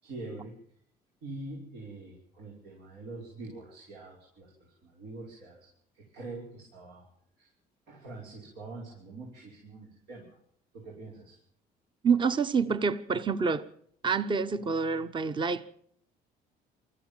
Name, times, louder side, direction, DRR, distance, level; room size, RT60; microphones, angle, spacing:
voice 1, 0.0-0.6 1.2-5.7 5.9-7.1 7.4-7.5 7.9-10.4 10.7-11.4, right 2 dB, 85° right, 5.8 m, -44 dB
voice 2, 12.0-13.6 14.0-15.7, right 5 dB, 30° right, 0.9 m, -27 dB
22.5 x 14.0 x 9.0 m
cardioid pair, 110°, 17 cm